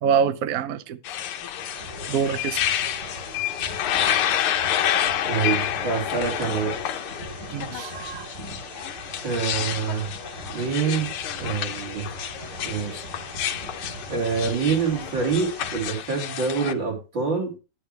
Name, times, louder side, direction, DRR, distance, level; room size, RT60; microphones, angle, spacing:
voice 1, 0.0-1.0 2.1-2.6 7.5-8.3, right 7 dB, 75° right, 0.7 m, -25 dB
sound 1, 1.0-16.7, left 10 dB, 85° left, 1.8 m, -29 dB
sound 2, 1.5-15.8, right 1 dB, 35° right, 3.9 m, -40 dB
voice 2, 5.2-6.7 9.2-10.1 10.5-11.1 11.4-12.1 12.6-13.0 14.1-17.5, right 5 dB, 60° right, 4.6 m, -26 dB
9.8 x 9.8 x 3.3 m
omnidirectional pair, 2.4 m